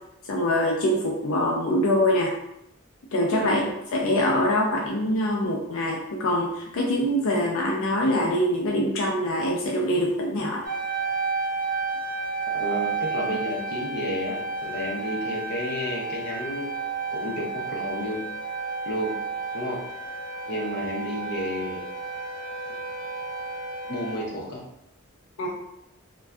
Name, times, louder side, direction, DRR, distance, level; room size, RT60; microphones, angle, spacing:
voice 1, 0.3-2.3 3.1-3.6 3.9-10.6 25.4-25.5, left 1 dB, 85° left, -2 dB, 0.5 m, -24 dB
voice 2, 3.4-3.7 12.5-16.7 17.1-18.2 18.8-19.1 19.5-19.8 20.5-21.8 23.9-24.6, left 1 dB, 50° left, -3 dB, 0.7 m, -31 dB
sound 1, 10.6-24.2, right 4 dB, 40° right, 0.7 m, -31 dB
2.5 x 2.2 x 3.3 m, 0.82 s
head